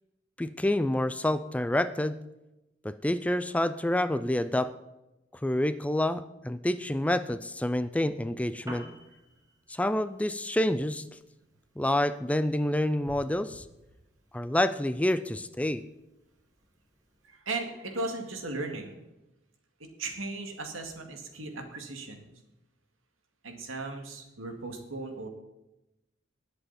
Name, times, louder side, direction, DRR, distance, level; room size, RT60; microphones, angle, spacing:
voice 1, 0.4-2.2 2.8-4.7 5.3-8.9 9.7-11.2 11.8-13.7 14.3-15.8, left 1 dB, 5° left, 12 dB, 0.4 m, -28 dB
Piano, 8.4-17.4, equal, 15° right, 2.2 m, -54 dB
voice 2, 17.2-19.0 19.8-22.3 23.4-25.3, right 2 dB, 85° right, 3 dB, 2.2 m, -37 dB
19.5 x 7.9 x 4.3 m, 0.96 s
head